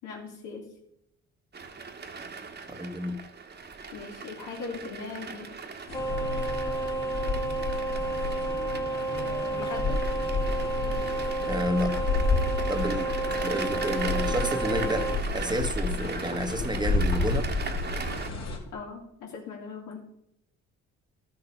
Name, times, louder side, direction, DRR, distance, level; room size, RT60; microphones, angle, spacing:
voice 1, 0.0-0.7 3.9-5.5 9.2-10.0 18.7-20.1, left 4 dB, 85° left, 0 dB, 3.0 m, -39 dB
sound 1, 1.5-18.3, right 5 dB, 35° right, 1.3 m, -39 dB
voice 2, 2.7-3.2 11.5-12.0 12.7-13.1 13.4-17.5, equal, 15° right, 7 dB, 1.1 m, -30 dB
sound 2, 5.9-18.6, left 3 dB, 60° left, 2.6 m, -31 dB
sound 3, 5.9-15.2, right 2 dB, 10° left, 0.8 m, -31 dB
12.0 x 6.9 x 5.4 m, 0.77 s
cardioid pair, 90°, 30 cm